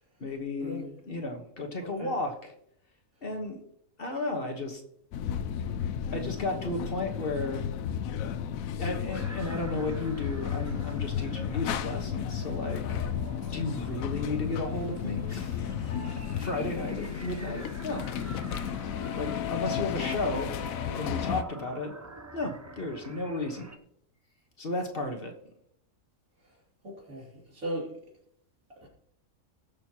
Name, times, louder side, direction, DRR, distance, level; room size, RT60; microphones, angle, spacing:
voice 1, 0.2-2.3 3.2-3.6 4.0-4.8 6.1-7.6 8.8-13.1 13.5-18.1 18.5-18.9 19.1-20.5 20.9-21.9 22.3-23.7 24.6-25.4, left 2 dB, 45° left, 3 dB, 1.5 m, -34 dB
voice 2, 1.8-2.1 26.4-26.6 26.8-27.9 28.8-28.9, right 1 dB, 90° right, -3 dB, 3.7 m, -38 dB
sound 1, 5.1-21.4, left 9 dB, 85° left, 1.1 m, -33 dB
sound 2, 9.1-23.8, right 2 dB, 20° right, 0.5 m, -46 dB
20.0 x 6.7 x 3.0 m, 0.74 s
omnidirectional pair, 1.4 m